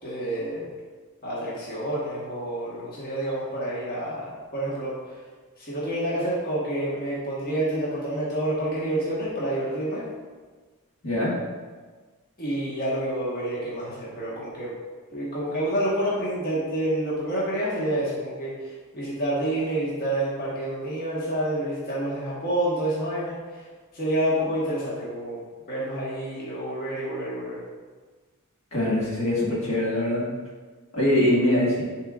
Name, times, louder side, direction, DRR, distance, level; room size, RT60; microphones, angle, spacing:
voice 1, 0.0-0.7 1.2-5.2 5.6-10.0 12.4-14.7 15.1-23.7 23.9-25.4 25.7-27.6, right 1 dB, 45° left, -7 dB, 1.5 m, -28 dB
voice 2, 28.7-30.3 30.9-31.8, left 1 dB, 70° left, -5 dB, 1.8 m, -23 dB
9.7 x 4.5 x 2.5 m, 1.4 s
head